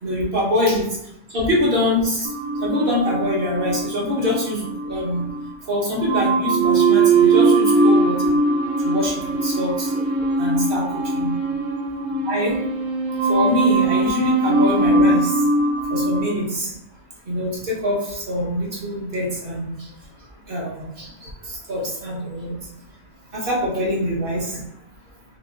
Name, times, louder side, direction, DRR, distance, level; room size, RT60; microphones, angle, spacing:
voice 1, 0.0-0.9 1.3-2.3 2.6-5.2 5.7-8.3 8.8-10.0 10.4-10.9 11.1-11.3 12.2-12.5 13.2-15.4 15.9-16.7 17.3-19.9 20.5-22.6 23.3-24.6, left 1 dB, 50° right, -4 dB, 1.2 m, -24 dB
sound 1, 2.3-5.5 6.0-12.8 13.1-16.3, right 1 dB, 65° right, 0.5 m, -23 dB
sound 2, 6.4-16.1, right 5 dB, 80° right, 1.0 m, -23 dB
3.6 x 3.5 x 2.4 m, 0.79 s
omnidirectional pair, 1.3 m